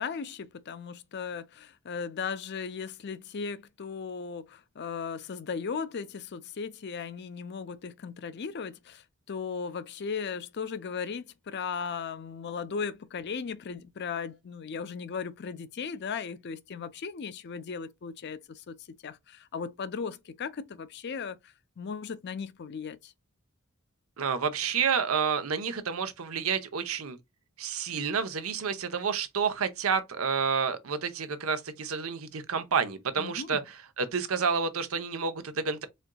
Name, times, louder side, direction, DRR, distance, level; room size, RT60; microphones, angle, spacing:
voice 1, 0.0-18.8 19.0-21.4 21.8-23.1 33.2-33.6, left 6 dB, 55° left, 0.5 m, -37 dB
voice 2, 24.2-27.2 27.6-35.9, right 6 dB, 85° right, 0.8 m, -29 dB
4.3 x 3.7 x 2.2 m
head